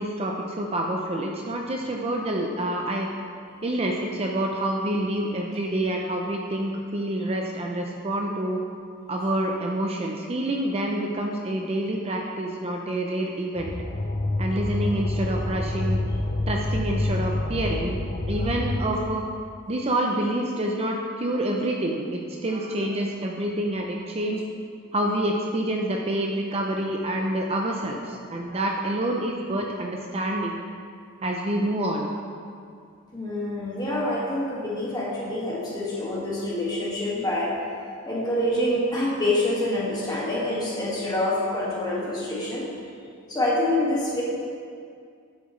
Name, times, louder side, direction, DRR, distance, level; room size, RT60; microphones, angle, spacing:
voice 1, 0.0-3.1 3.6-8.6 9.1-13.7 14.4-16.0 16.5-18.0 18.3-19.2 19.7-24.4 24.9-30.7 31.2-32.1, right 1 dB, 30° right, 0 dB, 0.5 m, -27 dB
sound 1, 13.6-18.8, left 2 dB, 40° left, 0.5 m, -27 dB
voice 2, 33.1-37.6 38.1-42.6 43.3-44.2, left 1 dB, 20° left, -6 dB, 1.9 m, -26 dB
11.0 x 7.3 x 3.2 m, 2.3 s
head